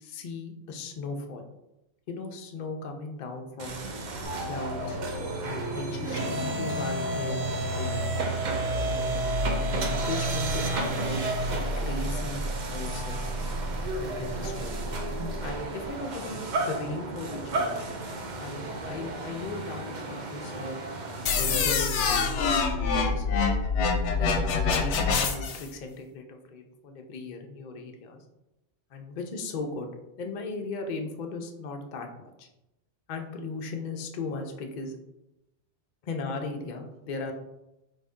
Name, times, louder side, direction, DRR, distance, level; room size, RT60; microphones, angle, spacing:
voice 1, 0.0-1.4 2.1-3.8 4.5-5.0 5.4-8.0 8.8-9.2 9.7-11.2 11.5-13.2 14.0-15.0 15.4-18.0 18.4-18.6 18.9-20.8 21.4-23.4 24.1-28.2 28.9-29.9 30.2-32.5 33.1-34.9 36.0-37.3, left 3 dB, 55° left, 4 dB, 0.6 m, -37 dB
sound 1, 3.6-21.6, right 2 dB, 55° right, 0.6 m, -32 dB
sound 2, 4.2-10.9, equal, 70° right, 1.4 m, -35 dB
sound 3, 21.3-25.7, left 5 dB, 75° left, 0.9 m, -25 dB
4.0 x 2.6 x 3.5 m, 0.91 s
omnidirectional pair, 1.2 m